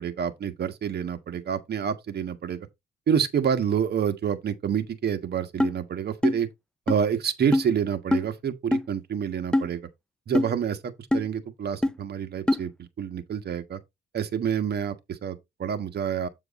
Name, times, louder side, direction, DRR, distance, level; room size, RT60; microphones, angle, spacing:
voice 1, 0.0-2.7 3.1-6.5 6.9-9.9 10.3-13.8 14.1-16.3, right 8 dB, 55° right, 1.4 m, -28 dB
sound 1, 5.6-5.7 6.2-6.4 6.9-7.0 7.5-7.7 8.1-8.3 8.7-8.9 9.5-9.7 10.3-10.5 11.1-11.3 11.8-11.9 12.5-12.6, left 1 dB, 5° left, 0.4 m, -22 dB
8.4 x 4.5 x 4.2 m
cardioid pair, 90°, 20 cm